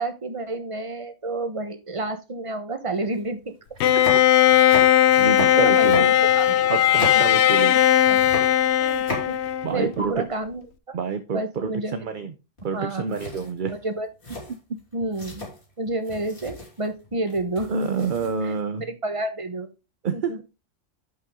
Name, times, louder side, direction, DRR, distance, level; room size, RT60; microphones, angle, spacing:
voice 1, 0.0-3.5 5.0-5.2 5.5-6.5 7.0-7.1 8.1-8.2 8.8-9.4 9.7-11.0 11.3-12.0 12.7-13.2 13.7-14.1 14.9-15.5 15.8-17.7 18.0-18.1 18.4-18.5 18.8-19.7 20.1-20.4, right 2 dB, 25° right, 9 dB, 1.2 m, -30 dB
sound 1, 3.1-3.2 3.7-7.8 8.0-9.7 10.0-10.1 12.6-12.8 13.1-18.6, left 1 dB, 45° left, 3.8 m, -36 dB
Bowed string instrument, 3.8-9.9, left 12 dB, 65° left, 0.8 m, -18 dB
voice 2, 5.2-6.1 6.7-7.8 9.6-10.2 10.9-12.3 12.6-13.7 17.7-18.9 20.0-20.4, right 5 dB, 50° right, 10 dB, 0.8 m, -27 dB
11.0 x 5.6 x 3.7 m, 0.28 s
omnidirectional pair, 1.3 m